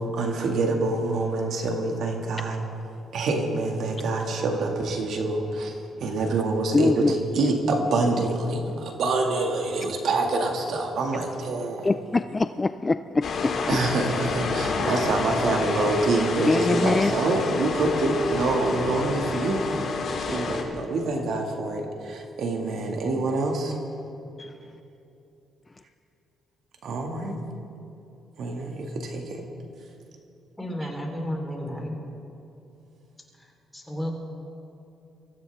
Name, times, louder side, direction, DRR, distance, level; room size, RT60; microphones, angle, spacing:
voice 1, 0.0-2.6 3.1-11.9 13.7-19.6 20.2-23.8 26.8-27.4 28.4-29.5, right 2 dB, 70° right, 2 dB, 2.1 m, -26 dB
voice 2, 6.7-7.1 11.8-13.5 16.4-17.1 24.4-24.6, left 3 dB, 25° left, 11 dB, 0.4 m, -23 dB
sound 1, 13.2-20.6, left 3 dB, 55° left, 2.5 m, -28 dB
voice 3, 30.6-32.0 33.7-34.2, equal, 5° left, 0 dB, 3.8 m, -32 dB
23.5 x 15.0 x 3.6 m, 2.8 s
cardioid pair, 90°, 0 cm